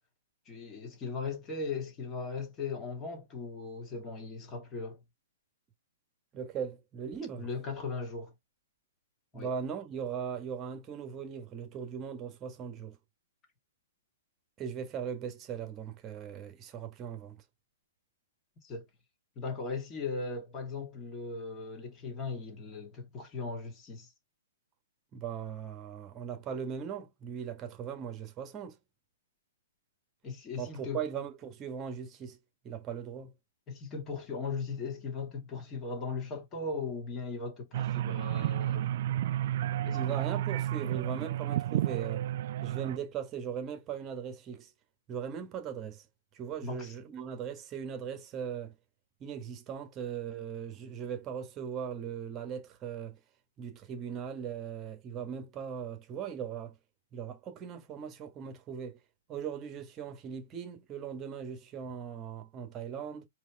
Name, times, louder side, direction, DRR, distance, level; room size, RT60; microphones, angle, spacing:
voice 1, 0.5-5.0 7.4-8.3 9.3-9.5 18.6-18.8 19.4-24.1 30.2-31.0 33.7-38.9 39.8-40.2 46.6-46.9, left 4 dB, 20° left, 2.4 m, -38 dB
voice 2, 6.3-7.5 9.3-13.0 14.6-17.4 25.1-28.7 30.6-32.4 32.6-33.3 39.9-42.3 42.6-44.7 45.1-46.0 46.3-48.7 49.2-53.2 53.6-56.8 57.1-59.0 59.3-63.3, right 7 dB, 20° right, 1.6 m, -39 dB
sound 1, 37.7-43.0, right 12 dB, 50° right, 0.4 m, -31 dB
4.7 x 3.2 x 3.5 m
hypercardioid pair, 155°, 0 cm